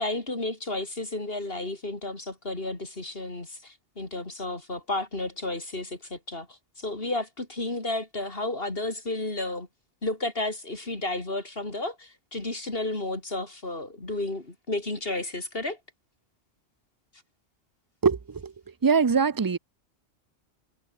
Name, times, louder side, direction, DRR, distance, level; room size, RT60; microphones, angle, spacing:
voice 1, 0.0-9.7 10.0-15.8, left 2 dB, 55° left, 3.8 m, -32 dB
voice 2, 18.8-19.6, right 5 dB, 35° right, 0.3 m, -21 dB
omnidirectional pair, 1.2 m